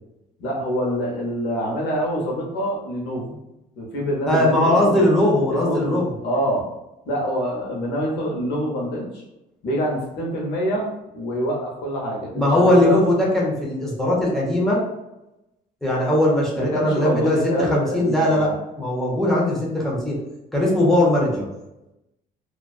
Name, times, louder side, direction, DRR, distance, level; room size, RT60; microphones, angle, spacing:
voice 1, 0.4-3.4 3.8-5.0 5.5-6.7 7.1-9.2 9.6-13.0 16.6-18.5, equal, 85° left, -1 dB, 0.8 m, -26 dB
voice 2, 4.3-6.1 12.3-14.8 15.8-18.5 18.8-20.2 20.5-21.5, left 1 dB, ahead, -4 dB, 0.8 m, -19 dB
2.4 x 2.3 x 2.3 m, 0.94 s
cardioid pair, 110°, 17 cm